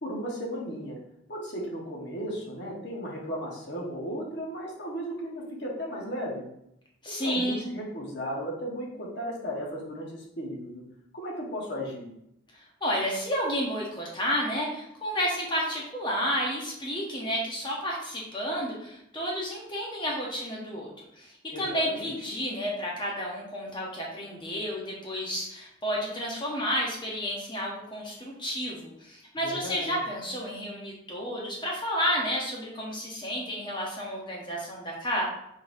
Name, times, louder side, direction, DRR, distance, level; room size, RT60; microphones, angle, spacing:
voice 1, 0.0-1.0 1.3-6.4 7.1-10.8 11.1-12.1 21.5-22.1 29.4-29.9, equal, 55° left, -3 dB, 1.2 m, -35 dB
voice 2, 7.0-7.6 12.5-20.9 21.2-35.2, equal, 25° left, -3 dB, 0.8 m, -31 dB
4.5 x 4.0 x 2.6 m, 0.78 s
head